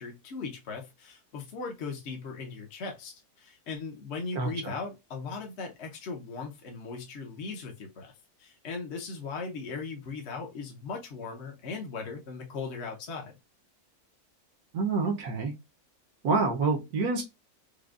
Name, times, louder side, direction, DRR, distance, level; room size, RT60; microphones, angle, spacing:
voice 1, 0.0-8.1 8.4-13.3, left 4 dB, 50° left, 1.0 m, -38 dB
voice 2, 4.3-4.7 14.7-15.5 16.2-17.2, right 4 dB, 75° right, 1.3 m, -27 dB
5.0 x 2.2 x 2.4 m
omnidirectional pair, 1.6 m